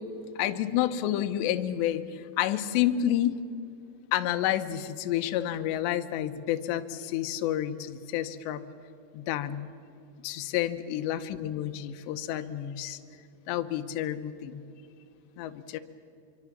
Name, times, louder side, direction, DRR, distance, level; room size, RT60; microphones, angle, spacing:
voice 1, 0.4-3.4 4.1-8.6 9.1-9.7 10.2-13.0 13.5-14.6 15.4-15.8, left 12 dB, 75° left, 9 dB, 2.8 m, -29 dB
27.0 x 24.0 x 7.4 m, 2.5 s
omnidirectional pair, 5.8 m